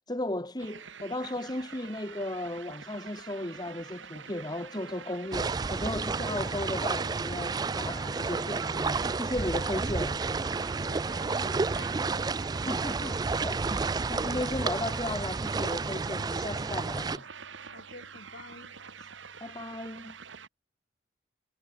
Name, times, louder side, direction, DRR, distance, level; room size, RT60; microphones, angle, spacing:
voice 1, 0.1-10.2 12.6-17.3 19.0-19.1 19.4-20.2, left 1 dB, 20° left, 1.8 m, -35 dB
sound 1, 0.6-20.5, right 6 dB, 90° right, 1.8 m, -47 dB
sound 2, 5.3-17.2, right 4 dB, 20° right, 0.3 m, -31 dB
voice 2, 10.8-12.0 17.7-18.7, left 2 dB, 70° left, 6.2 m, -49 dB
head